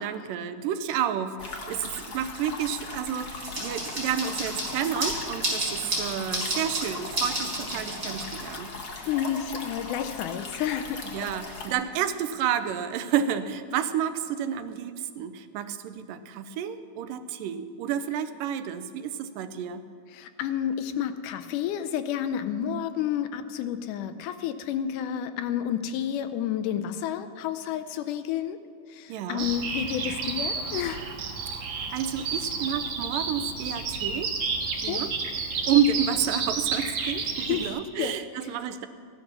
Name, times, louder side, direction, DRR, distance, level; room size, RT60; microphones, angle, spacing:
voice 1, 0.0-8.7 11.0-19.8 29.1-29.5 31.5-34.3 34.8-35.1 35.7-38.9, right 8 dB, 90° right, 11 dB, 2.4 m, -30 dB
sound 1, 1.4-11.7, left 3 dB, 65° left, 0.9 m, -39 dB
sound 2, 3.4-8.7, right 1 dB, 20° right, 4.7 m, -32 dB
voice 2, 9.1-11.0 20.1-28.6 28.9-31.0 34.9-35.0 37.5-37.7 38.0-38.1, left 9 dB, 80° left, 10 dB, 2.1 m, -30 dB
Bird vocalization bird call bird song, 29.4-37.7, right 4 dB, 65° right, 2.7 m, -31 dB
15.0 x 11.0 x 6.0 m, 2.2 s
omnidirectional pair, 3.8 m